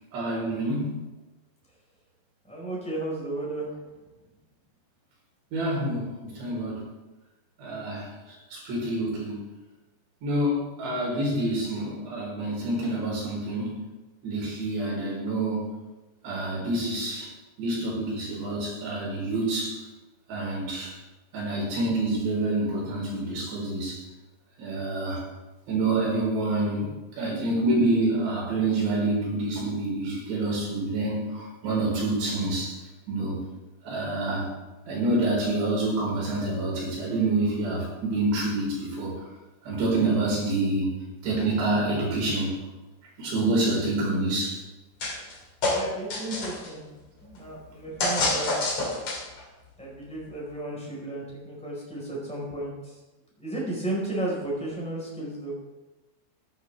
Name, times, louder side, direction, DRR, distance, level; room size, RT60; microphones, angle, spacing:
voice 1, 0.1-1.0 5.5-6.9 7.6-8.1 8.5-9.4 10.2-13.8 14.2-15.7 16.2-17.3 17.6-19.8 20.3-20.9 21.3-24.0 24.6-25.2 25.7-26.9 27.2-32.7 33.1-33.4 33.8-34.5 34.9-39.1 39.6-40.9 41.2-42.6 43.2-44.6, right 2 dB, 55° right, -4 dB, 6.2 m, -27 dB
voice 2, 2.4-3.7 45.7-46.8 47.2-48.5 49.8-53.0 53.4-55.5, right 1 dB, ahead, -5 dB, 3.7 m, -33 dB
sound 1, 45.0-45.3 45.6-46.7 48.0-49.4, left 2 dB, 45° left, 2.3 m, -27 dB
14.0 x 11.0 x 3.4 m, 1.1 s
omnidirectional pair, 6.0 m